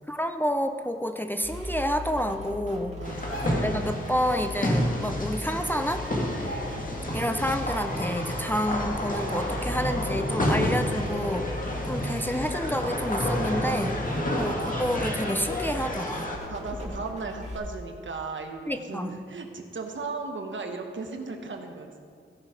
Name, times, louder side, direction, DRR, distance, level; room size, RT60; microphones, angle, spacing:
voice 1, 0.1-3.0 3.6-6.0 7.1-11.5 11.9-14.0 14.4-16.3 18.7-19.1, equal, 10° left, 7 dB, 0.5 m, -29 dB
sound 1, 1.4-17.6, left 1 dB, 30° right, 2.1 m, -39 dB
sound 2, 3.0-16.4, left 1 dB, 40° left, 1.9 m, -30 dB
voice 2, 3.0-3.7 11.0-11.5 16.5-22.0, right 4 dB, 65° right, 4 dB, 1.1 m, -37 dB
sound 3, 3.1-3.8 5.3-5.4 5.7-5.9 6.3-7.2 7.6-7.7 8.4-8.5 9.1-9.7 10.1-10.2, right 1 dB, 70° left, 3.0 m, -39 dB
16.0 x 5.6 x 4.9 m, 2.2 s
wide cardioid pair, 85°, 21 cm